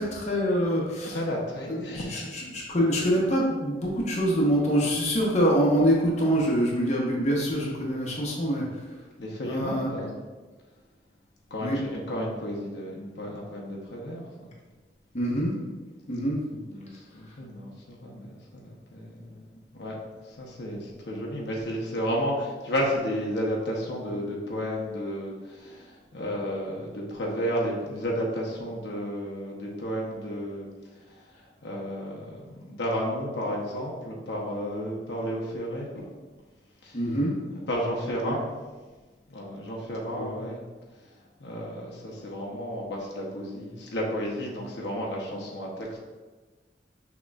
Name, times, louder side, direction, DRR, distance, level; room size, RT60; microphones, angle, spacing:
voice 1, 0.0-1.2 1.7-8.8 9.4-9.9 11.6-11.8 15.1-15.5 16.1-16.4 36.9-37.3 38.2-38.4 40.1-40.3, equal, 40° left, -3 dB, 0.8 m, -25 dB
voice 2, 1.0-2.4 9.2-10.1 11.5-14.5 16.5-20.0 20.2-36.1 36.8-37.0 37.7-38.4 39.3-40.6 41.0-46.0, equal, 75° left, -2 dB, 0.8 m, -32 dB
6.2 x 3.0 x 2.3 m, 1.3 s
head